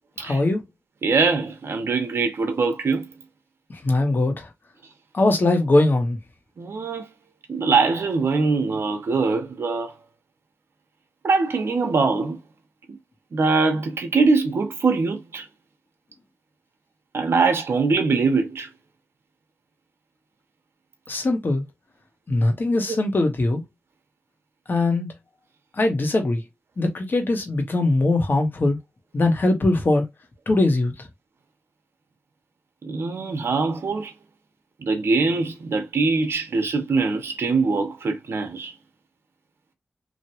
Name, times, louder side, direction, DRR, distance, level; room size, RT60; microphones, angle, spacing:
voice 1, 0.2-0.6 3.8-4.5 5.1-6.2 21.1-21.6 22.3-23.6 24.7-25.1 25.7-26.4 26.8-28.8 29.1-30.0 30.5-30.9, left 2 dB, 50° left, 1.3 m, -21 dB
voice 2, 1.0-3.1 6.6-7.1 7.5-9.9 11.2-12.4 12.9-13.0 13.3-15.5 17.1-18.7 32.8-34.1 34.8-38.7, right 4 dB, 75° right, 0.9 m, -22 dB
3.2 x 2.7 x 2.8 m
cardioid pair, 55°, 4 cm